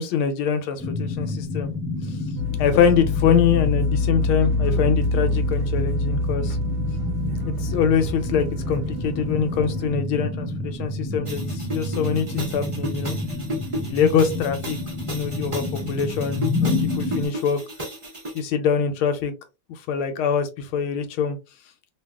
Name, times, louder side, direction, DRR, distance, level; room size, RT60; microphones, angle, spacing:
voice 1, 0.0-1.7 2.0-2.2 2.6-6.6 7.4-13.2 13.8-14.8 15.1-17.6 18.3-19.3 19.7-21.4, left 7 dB, 80° left, 1.4 m, -24 dB
sound 1, 0.8-17.3, left 2 dB, ahead, 0.7 m, -29 dB
sound 2, 2.4-9.9, left 3 dB, 70° right, 1.3 m, -26 dB
sound 3, 11.2-18.4, right 1 dB, 45° right, 0.4 m, -35 dB
3.3 x 2.3 x 2.2 m
omnidirectional pair, 2.3 m